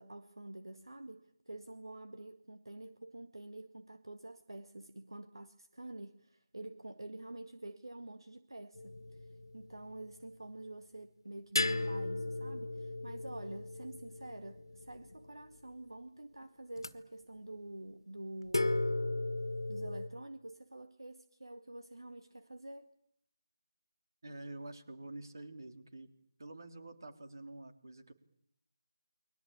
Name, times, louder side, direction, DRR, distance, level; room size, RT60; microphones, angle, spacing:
voice 1, 0.0-18.8 19.7-22.9, right 1 dB, 75° right, 9 dB, 1.8 m, -48 dB
sound 1, 8.7-9.9 11.5-15.3 16.8-16.9 18.5-20.1, left 2 dB, 65° left, 1.8 m, -36 dB
voice 2, 24.2-26.1 26.4-28.1, right 2 dB, 55° right, 8 dB, 3.6 m, -48 dB
29.5 x 22.5 x 8.9 m, 0.72 s
figure-of-eight pair, 160°, 2 cm